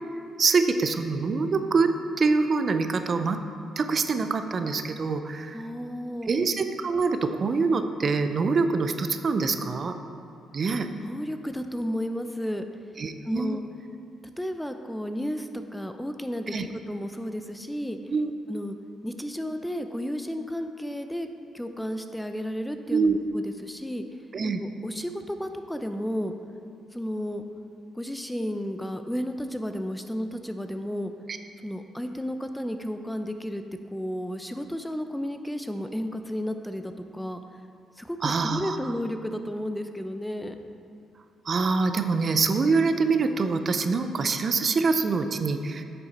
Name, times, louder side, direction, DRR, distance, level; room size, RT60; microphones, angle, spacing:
voice 1, 0.4-1.9 2.2-3.4 3.8-5.6 6.3-9.9 10.5-10.9 13.0-13.6 16.5-16.7 18.1-18.3 22.9-23.2 24.3-24.6 38.2-38.8 41.5-45.8, right 4 dB, 45° right, 8 dB, 0.5 m, -25 dB
voice 2, 5.5-6.3 10.7-12.6 13.2-13.6 14.4-18.0 18.5-18.8 19.0-21.3 21.5-24.0 24.6-26.3 26.9-27.4 27.9-31.1 31.6-33.6 33.9-37.4 38.0-40.6, equal, 5° left, 7 dB, 0.5 m, -32 dB
8.7 x 6.9 x 4.2 m, 2.5 s
cardioid pair, 90°, 0 cm